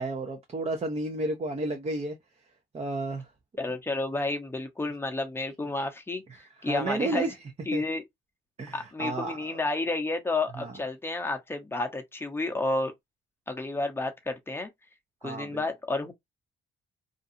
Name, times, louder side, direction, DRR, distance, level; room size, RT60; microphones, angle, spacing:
voice 1, 0.0-2.2 2.7-3.3 6.6-7.4 7.7-7.8 8.6-9.6 10.6-10.7 15.2-15.7, right 2 dB, 30° right, 0.6 m, -32 dB
voice 2, 3.6-7.3 7.7-8.0 8.7-12.9 13.5-14.7 15.2-16.1, left 2 dB, 10° left, 0.7 m, -31 dB
2.5 x 2.3 x 2.6 m
cardioid pair, 90°, 20 cm